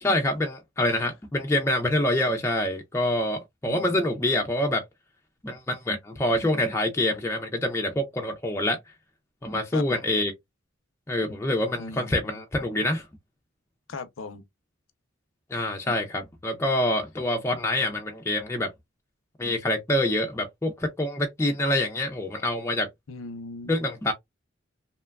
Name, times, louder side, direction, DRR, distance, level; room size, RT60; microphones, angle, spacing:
voice 1, 0.0-4.8 5.4-8.8 9.4-10.3 11.1-13.0 15.5-18.7 19.4-22.9 23.7-24.1, left 1 dB, 15° left, 0.3 m, -26 dB
voice 2, 3.7-4.1 9.7-9.9 11.8-12.4 13.9-14.4 23.1-23.8, left 3 dB, 80° left, 0.6 m, -39 dB
2.9 x 2.2 x 2.2 m
head